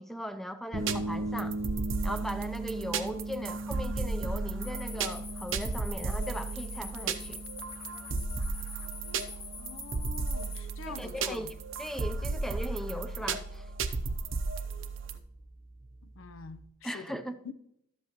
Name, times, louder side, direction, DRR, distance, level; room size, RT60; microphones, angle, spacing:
voice 1, 0.0-1.6 2.0-7.4 10.9-11.5 11.8-13.7 16.8-17.4, equal, ahead, 0.5 m, -38 dB
sound 1, 0.7-16.6, right 2 dB, 40° right, 0.9 m, -41 dB
sound 2, 0.8-15.2, right 4 dB, 70° right, 0.7 m, -35 dB
sound 3, 4.6-10.6, left 5 dB, 30° left, 0.9 m, -45 dB
voice 2, 9.6-11.5 16.2-17.2, left 4 dB, 75° left, 0.6 m, -45 dB
12.5 x 7.9 x 3.0 m
head